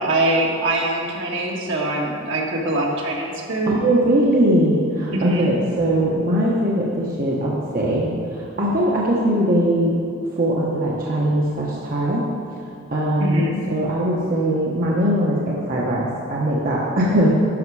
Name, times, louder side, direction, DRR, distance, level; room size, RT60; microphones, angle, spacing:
voice 1, 0.0-3.8 5.1-5.5 13.2-13.6, right 1 dB, 65° right, -2 dB, 1.6 m, -23 dB
voice 2, 3.7-10.0 10.4-12.2 12.9-13.4 13.7-17.3, right 1 dB, 45° right, -5 dB, 1.1 m, -20 dB
11.0 x 6.5 x 4.8 m, 2.3 s
head